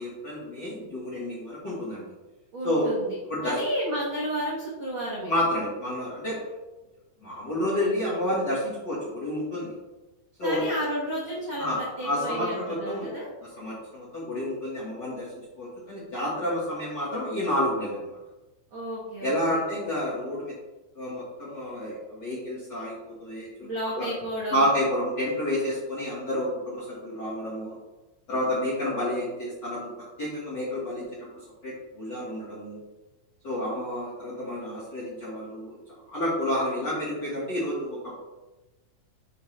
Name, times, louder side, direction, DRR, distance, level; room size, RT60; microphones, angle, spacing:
voice 1, 0.0-2.0 2.6-2.9 3.3-3.5 5.3-6.4 7.2-9.7 10.4-10.6 11.6-13.1 13.6-15.3 15.6-18.2 19.2-20.5 20.9-23.7 24.0-24.1 24.5-27.8 28.3-29.9 30.2-31.3 31.6-32.8 33.4-35.8 36.1-38.2, left 1 dB, 45° left, -9 dB, 1.5 m, -29 dB
voice 2, 2.5-3.2 3.4-5.3 7.7-8.2 10.4-13.3 18.7-19.6 23.6-24.7, equal, 60° right, -7 dB, 1.3 m, -32 dB
9.0 x 3.5 x 3.2 m, 1.1 s
omnidirectional pair, 4.1 m